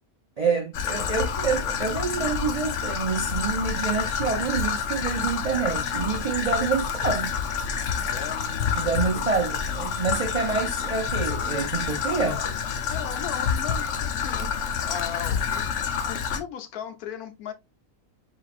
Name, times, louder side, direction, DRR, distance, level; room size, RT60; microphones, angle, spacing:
voice 1, 0.4-7.4 8.8-12.4, right 5 dB, 60° right, 0.4 m, -27 dB
Traffic noise roadway noise / Trickle dribble, 0.7-16.4, left 7 dB, 65° left, 0.9 m, -28 dB
voice 2, 8.0-8.5 9.1-9.2 12.0-12.5 12.9-15.7 16.0-17.5, left 8 dB, 85° left, 1.3 m, -37 dB
4.6 x 3.9 x 2.4 m
omnidirectional pair, 1.5 m